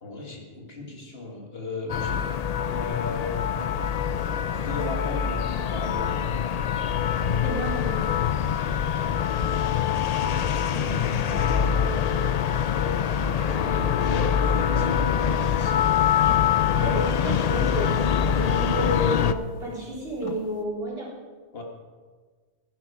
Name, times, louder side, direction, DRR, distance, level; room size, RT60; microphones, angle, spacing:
voice 1, 0.0-2.3 2.6-6.4 11.3-12.4 12.7-15.9 21.5-21.6, left 3 dB, 55° left, 1 dB, 2.0 m, -36 dB
sound 1, 1.9-19.3, left 8 dB, 70° left, 0.3 m, -24 dB
voice 2, 7.4-8.0 10.7-11.4 13.7-13.8 16.8-21.1, equal, 55° right, -6 dB, 4.2 m, -31 dB
sound 2, 15.1-15.5 15.8-16.9 17.2-20.6, left 4 dB, 30° left, 1.1 m, -39 dB
16.0 x 10.5 x 4.9 m, 1.5 s
omnidirectional pair, 1.2 m